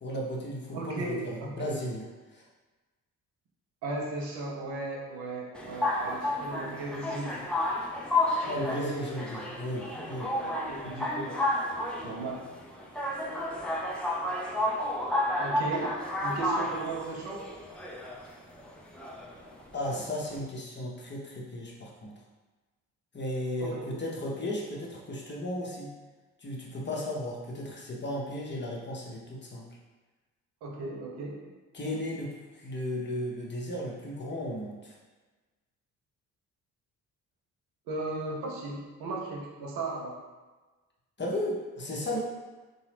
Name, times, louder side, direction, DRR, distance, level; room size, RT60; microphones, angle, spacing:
voice 1, 0.0-2.1 2.3-2.4 8.4-10.3 19.7-22.1 23.1-25.9 26.4-29.6 31.7-34.9 41.2-42.2, left 1 dB, 25° left, -3 dB, 0.7 m, -35 dB
voice 2, 0.7-1.9 3.8-7.4 8.5-9.3 10.3-11.5 12.0-12.5 15.4-17.5 19.6-19.7 23.6-23.9 30.6-31.4 37.9-40.2, right 2 dB, 60° right, -2 dB, 0.8 m, -36 dB
sound 1, 5.5-20.4, left 1 dB, ahead, 0.4 m, -31 dB
2.8 x 2.3 x 3.2 m, 1.3 s
figure-of-eight pair, 45°, 44 cm